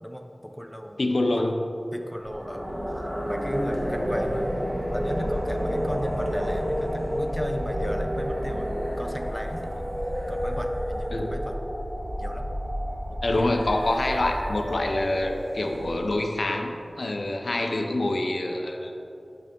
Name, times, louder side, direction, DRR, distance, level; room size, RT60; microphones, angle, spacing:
voice 1, 0.0-1.0 1.3-1.6 1.9-2.7 3.2-4.4 4.9-8.7 9.0-9.9 10.3-11.6 12.2-12.5 13.1-13.5, equal, 5° left, 4 dB, 0.4 m, -35 dB
voice 2, 1.0-1.6 11.1-11.3 13.2-18.9, left 2 dB, 80° left, 3 dB, 0.5 m, -26 dB
sound 1, 2.2-16.3, equal, 35° right, 1.4 m, -30 dB
5.7 x 4.9 x 3.7 m, 2.7 s
wide cardioid pair, 60°, 0 cm